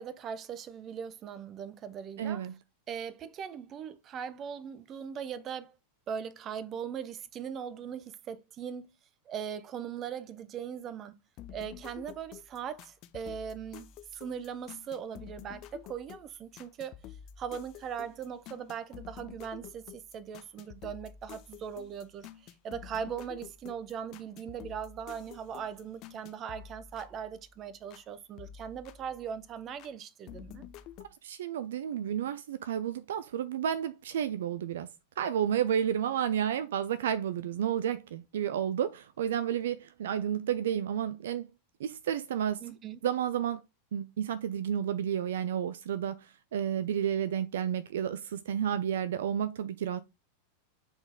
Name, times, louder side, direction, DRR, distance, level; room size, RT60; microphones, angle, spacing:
voice 1, 0.0-2.5 2.9-5.8 6.1-8.9 9.3-11.2 11.5-17.0 17.4-30.6 42.6-43.0, right 7 dB, 30° right, 0.7 m, -40 dB
voice 2, 2.2-2.5 31.2-34.9 35.2-41.5 41.8-42.6 43.0-43.6 43.9-50.0, right 9 dB, 60° right, 0.4 m, -31 dB
sound 1, 11.4-28.1 28.4-29.9 30.3-31.1, left 9 dB, 40° left, 0.7 m, -50 dB
7.8 x 4.1 x 3.6 m
figure-of-eight pair, 90°, 0 cm